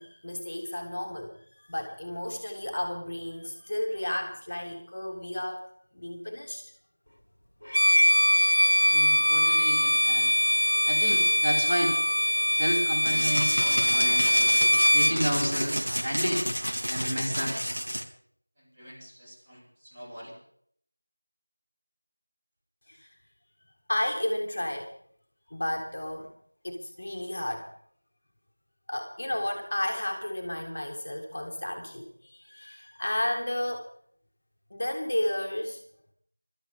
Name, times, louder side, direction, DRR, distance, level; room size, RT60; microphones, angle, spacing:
voice 1, 0.0-1.4 1.6-5.6 5.9-6.6 22.9-23.1 23.9-24.9 25.5-26.3 26.6-27.7 28.9-33.9 34.7-35.8, left 1 dB, 30° left, 2 dB, 1.8 m, -32 dB
Bowed string instrument, 7.7-15.2, equal, 60° left, 1.5 m, -22 dB
voice 2, 8.8-10.3 10.8-12.0 12.5-14.3 14.9-16.4 16.9-17.6 18.8-20.4, equal, 10° right, -6 dB, 2.8 m, -32 dB
sound 1, 13.0-18.0, equal, 75° right, 3.1 m, -30 dB
22.5 x 13.0 x 3.6 m, 0.63 s
figure-of-eight pair, 175°, 0 cm